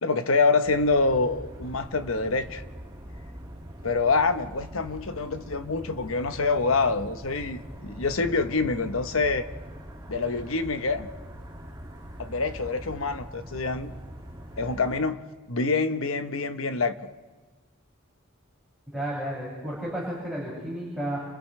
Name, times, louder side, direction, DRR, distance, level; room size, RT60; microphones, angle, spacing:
voice 1, 0.0-2.6 3.8-9.4 10.1-11.1 12.2-13.9 14.6-16.9, left 3 dB, 85° left, 1.1 m, -26 dB
sound 1, 0.6-15.0, equal, 20° right, 2.2 m, -42 dB
voice 2, 18.9-21.2, right 1 dB, ahead, 6.6 m, -32 dB
30.0 x 29.5 x 3.3 m
head